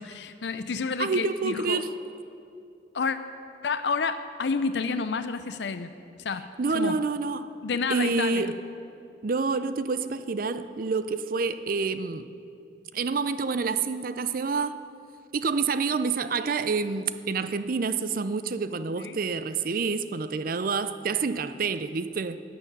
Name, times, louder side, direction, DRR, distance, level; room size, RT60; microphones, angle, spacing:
voice 1, 0.0-1.8 2.9-3.2 3.6-5.9 6.2-6.5 6.7-7.0 7.6-8.5 19.0-19.2, left 5 dB, 75° left, 0.5 m, -29 dB
voice 2, 1.0-1.9 6.6-7.5 7.9-8.5 9.2-12.3 12.9-14.8 15.3-22.4, right 4 dB, 50° right, 0.5 m, -28 dB
13.0 x 6.9 x 9.8 m
head